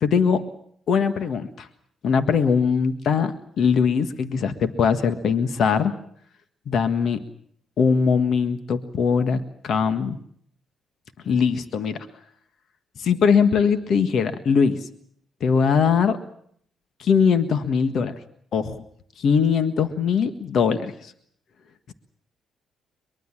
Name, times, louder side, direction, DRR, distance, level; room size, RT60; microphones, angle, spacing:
voice 1, 0.0-0.4 0.9-1.7 2.0-5.9 6.7-7.2 7.8-10.2 11.2-12.0 13.0-14.8 15.4-16.2 17.0-18.1 18.5-18.8 19.2-20.9, left 6 dB, 65° left, 10 dB, 1.6 m, -21 dB
23.0 x 22.0 x 7.5 m, 0.65 s
cardioid pair, 90°, 0 cm